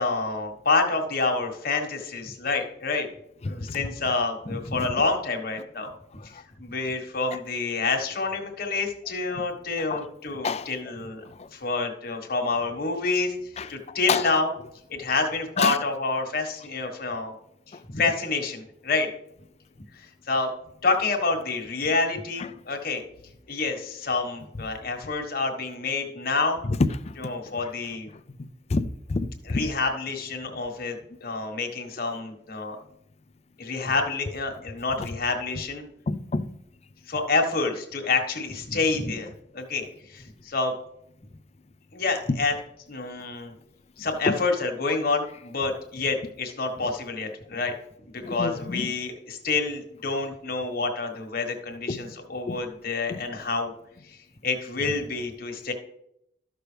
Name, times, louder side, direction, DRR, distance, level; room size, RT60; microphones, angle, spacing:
voice 1, 0.0-3.1 3.4-5.9 6.2-11.2 11.5-14.5 14.9-17.3 17.7-19.1 19.9-20.5 20.8-23.0 23.5-26.6 27.2-28.1 29.4-32.8 33.6-35.8 37.1-40.7 41.9-42.5 42.9-43.5 44.0-47.7 48.1-53.7 54.0-55.7, left 3 dB, 55° left, 1.5 m, -28 dB
voice 2, 28.7-29.6 36.1-36.5 48.2-48.9 51.9-52.0 52.5-52.6 53.1-53.2, left 4 dB, 35° left, 0.4 m, -28 dB
13.0 x 6.1 x 3.4 m
head